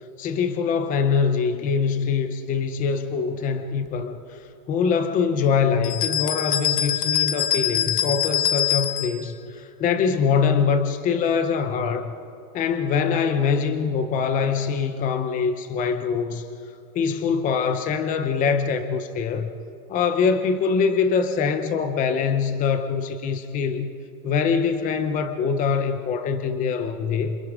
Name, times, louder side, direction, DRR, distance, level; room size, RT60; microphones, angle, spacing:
voice 1, 0.2-4.2 4.7-12.1 12.5-16.4 16.9-19.5 19.9-23.9 24.2-27.4, left 6 dB, 15° left, 9 dB, 0.9 m, -23 dB
sound 1, 5.8-9.2, left 10 dB, 70° left, 2.4 m, -24 dB
28.5 x 26.0 x 5.1 m, 2.5 s
supercardioid pair, 155°, 47 cm